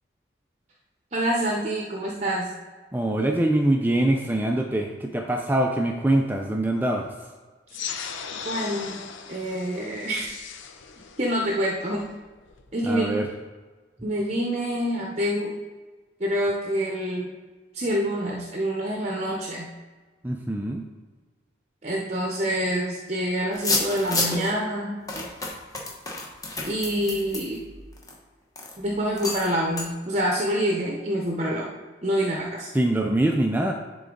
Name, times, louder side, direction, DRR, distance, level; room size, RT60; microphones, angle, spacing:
voice 1, 1.1-2.5 7.7-7.9 8.4-9.0 9.3-10.3 11.2-12.0 12.7-13.2 14.0-15.5 16.2-17.3 17.7-19.7 21.8-25.0 26.6-27.6 28.8-31.7 32.0-32.7, equal, 35° right, -1 dB, 0.8 m, -26 dB
voice 2, 2.9-7.1 12.9-13.3 20.2-20.9 32.7-33.7, right 1 dB, 10° right, 2 dB, 0.4 m, -23 dB
sound 1, 7.7-12.7, left 7 dB, 85° left, 0.6 m, -38 dB
sound 2, 23.5-24.5 25.1-28.1 28.5-28.7 29.2-29.5 29.8-29.9, left 2 dB, 20° left, 1.2 m, -29 dB
10.5 x 3.8 x 3.8 m, 1.4 s
head